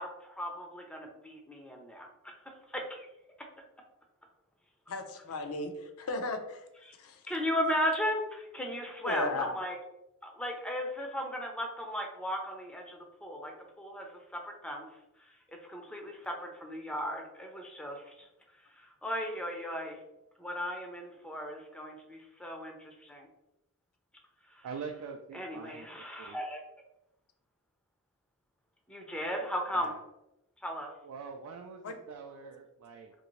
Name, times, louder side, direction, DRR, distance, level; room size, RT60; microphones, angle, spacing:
voice 1, 0.0-3.1 6.9-7.0 7.3-9.8 10.2-14.9 15.2-18.3 18.7-20.0 20.4-23.3 24.5-24.7 25.3-26.6 28.9-29.9 30.6-30.9, equal, 5° left, 2 dB, 0.4 m, -36 dB
voice 2, 4.9-6.6 7.0-7.2 9.0-9.5 31.8-31.9, left 3 dB, 70° left, 6 dB, 0.5 m, -35 dB
voice 3, 24.6-26.4 29.7-30.0 31.0-33.1, right 5 dB, 80° right, 3 dB, 0.3 m, -44 dB
2.7 x 2.6 x 3.0 m, 0.90 s
head